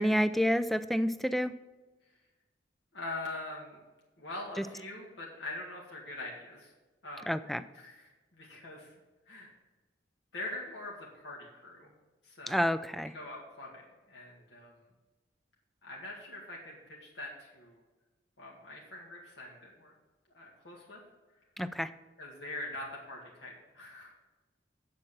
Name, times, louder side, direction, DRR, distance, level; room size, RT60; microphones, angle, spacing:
voice 1, 0.0-1.5 7.3-7.6 12.5-13.1 21.6-21.9, equal, ahead, 12 dB, 0.3 m, -29 dB
voice 2, 2.9-3.8 4.2-6.7 7.0-7.4 7.7-8.9 9.3-9.5 10.3-11.9 12.2-12.7 13.1-14.8 15.8-17.8 18.4-19.9 20.3-21.0 22.2-24.2, left 2 dB, 75° left, -3 dB, 1.9 m, -43 dB
7.7 x 7.6 x 7.3 m, 1.2 s
head